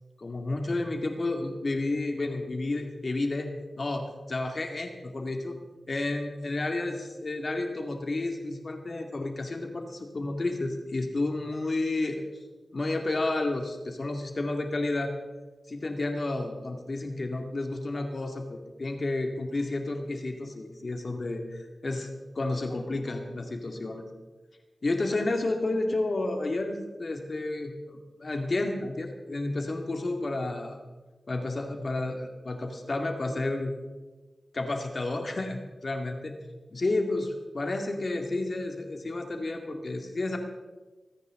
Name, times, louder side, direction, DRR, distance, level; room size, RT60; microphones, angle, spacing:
voice 1, 0.2-5.5 5.9-12.2 12.7-15.1 15.7-22.1 22.3-24.0 24.8-30.8 31.3-33.7 34.5-36.3 36.7-40.4, left 2 dB, 55° left, 4 dB, 2.3 m, -31 dB
27.0 x 9.7 x 3.9 m, 1.2 s
cardioid pair, 40°, 0 cm